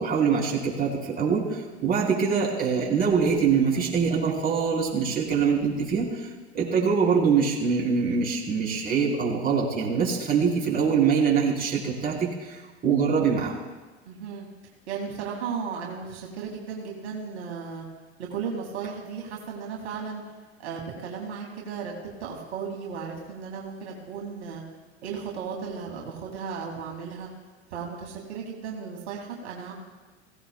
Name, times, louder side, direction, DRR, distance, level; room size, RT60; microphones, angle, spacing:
voice 1, 0.0-6.3 6.5-13.6, right 6 dB, 25° right, -4 dB, 3.9 m, -24 dB
voice 2, 14.1-14.5 14.9-17.8 18.2-20.2 20.6-24.6 25.0-27.3 27.7-29.7, right 6 dB, 75° right, -1 dB, 2.2 m, -35 dB
16.5 x 16.0 x 2.2 m, 1.3 s
hypercardioid pair, 95°, 34 cm